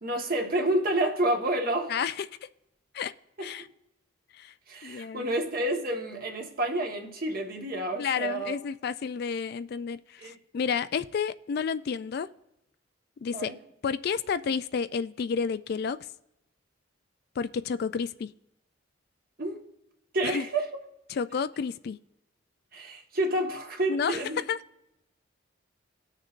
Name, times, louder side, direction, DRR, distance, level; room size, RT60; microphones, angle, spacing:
voice 1, 0.0-1.9 3.4-3.5 4.7-8.5 10.2-10.3 13.3-13.6 19.4-19.6 20.1-20.7 22.7-24.4, right 1 dB, 45° right, 1.4 m, -29 dB
voice 2, 1.9-2.3 2.9-3.1 3.4-3.7 4.3-4.5 4.8-5.3 8.0-12.3 13.2-13.5 13.8-16.0 17.4-18.3 20.2-20.4 21.1-22.0 23.9-24.2 24.5-24.6, left 6 dB, 50° left, 0.3 m, -30 dB
19.0 x 6.5 x 2.5 m
head